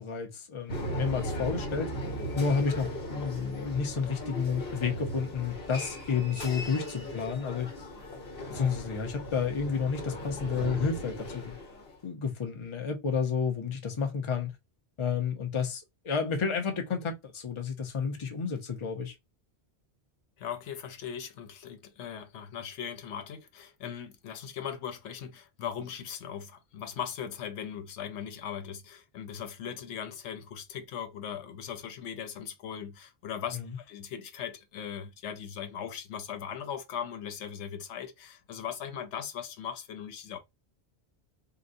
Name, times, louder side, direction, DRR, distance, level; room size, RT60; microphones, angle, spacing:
voice 1, 0.0-1.9 2.4-7.7 8.5-11.5 12.0-14.5 15.0-19.1 33.5-33.7, left 6 dB, 35° left, 0.6 m, -31 dB
sound 1, 0.7-12.0, equal, 55° left, 1.1 m, -37 dB
voice 2, 20.4-40.4, left 8 dB, 90° left, 0.9 m, -39 dB
3.8 x 2.1 x 2.6 m
omnidirectional pair, 1.1 m